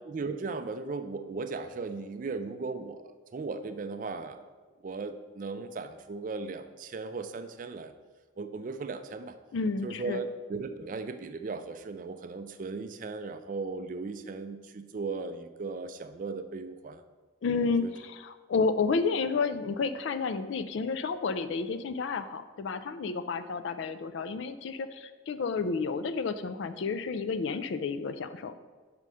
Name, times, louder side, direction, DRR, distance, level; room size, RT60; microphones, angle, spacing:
voice 1, 0.0-4.4 4.8-7.9 8.4-9.4 9.8-17.0 17.8-17.9, right 4 dB, 40° right, 9 dB, 0.3 m, -37 dB
voice 2, 9.5-10.2 17.4-28.7, left 4 dB, 65° left, 11 dB, 0.4 m, -31 dB
5.6 x 5.2 x 4.8 m, 1.3 s
head